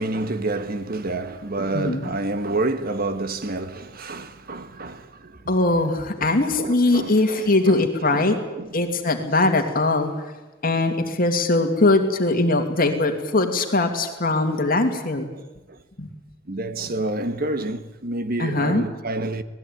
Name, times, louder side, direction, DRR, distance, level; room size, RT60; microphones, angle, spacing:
voice 1, 0.0-5.5 6.2-8.7 9.2-9.3 15.3-15.4 15.7-15.8 16.5-19.4, right 2 dB, 50° right, 1.5 m, -29 dB
voice 2, 1.7-2.1 5.5-8.4 8.7-10.3 10.6-15.2 16.0-16.1 18.4-18.8, left 2 dB, 50° left, 2.7 m, -21 dB
26.5 x 19.0 x 9.3 m
head